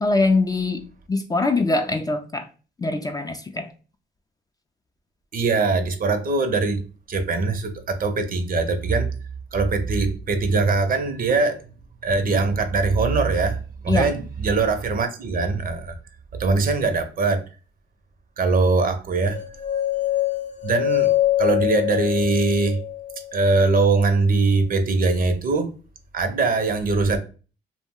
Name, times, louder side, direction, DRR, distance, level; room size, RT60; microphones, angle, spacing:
voice 1, 0.0-2.5 2.8-3.7 13.9-14.1, left 3 dB, 20° left, 0.3 m, -23 dB
voice 2, 5.3-6.8 7.1-9.1 9.5-11.6 12.0-13.6 13.8-16.0 16.4-17.4 18.4-19.4 20.6-21.1 21.4-22.8 23.3-25.7 26.1-27.2, right 3 dB, 45° right, 0.6 m, -21 dB
sound 1, 19.3-23.4, left 13 dB, 40° left, 0.8 m, -24 dB
2.4 x 2.0 x 3.5 m
cardioid pair, 90°, 20 cm